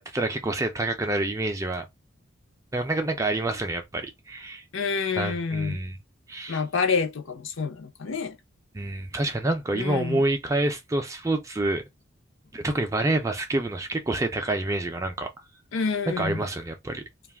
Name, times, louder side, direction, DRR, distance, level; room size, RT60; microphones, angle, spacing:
voice 1, 0.0-1.8 2.7-4.6 5.2-6.0 6.3-6.6 8.7-11.8 12.5-15.3 16.1-17.0, right 2 dB, 15° right, 0.3 m, -27 dB
voice 2, 4.7-5.8 6.5-8.4 9.7-10.2 15.7-16.5, left 5 dB, 70° left, 0.6 m, -28 dB
2.3 x 2.0 x 3.2 m
head